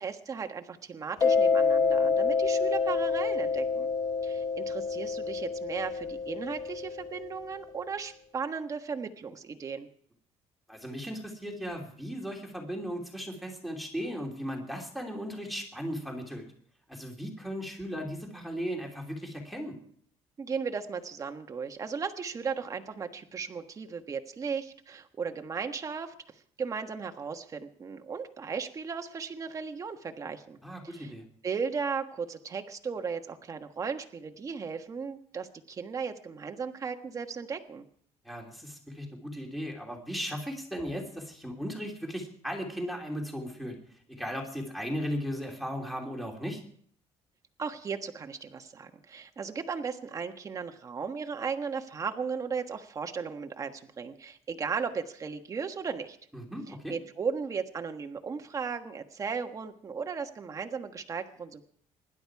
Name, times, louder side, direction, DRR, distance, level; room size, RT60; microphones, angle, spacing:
voice 1, 0.0-3.9 4.2-9.9 20.4-26.1 26.6-30.6 30.8-31.1 31.4-37.8 47.6-56.2 56.9-61.6, right 5 dB, 30° right, 6 dB, 1.4 m, -36 dB
Mallet percussion, 1.2-7.6, left 5 dB, 30° left, 0.9 m, -28 dB
voice 2, 10.7-16.5 16.9-19.7 30.6-31.2 38.2-43.8 44.1-46.6 56.3-56.9, equal, ahead, 1 dB, 2.9 m, -36 dB
25.5 x 11.5 x 4.7 m, 0.62 s
cardioid pair, 155°, 12 cm